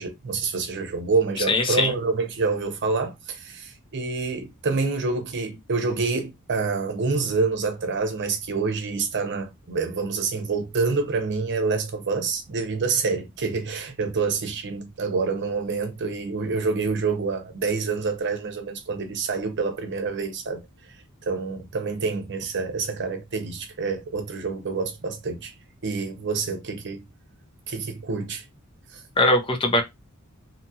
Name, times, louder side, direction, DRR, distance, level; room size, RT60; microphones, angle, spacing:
voice 1, 0.0-20.6 21.2-25.5 25.8-27.0 27.7-28.4 28.9-29.0, right 4 dB, 55° right, 0.7 m, -27 dB
voice 2, 1.5-1.9 29.2-29.8, left 2 dB, 25° left, 0.5 m, -20 dB
2.8 x 2.3 x 2.7 m
head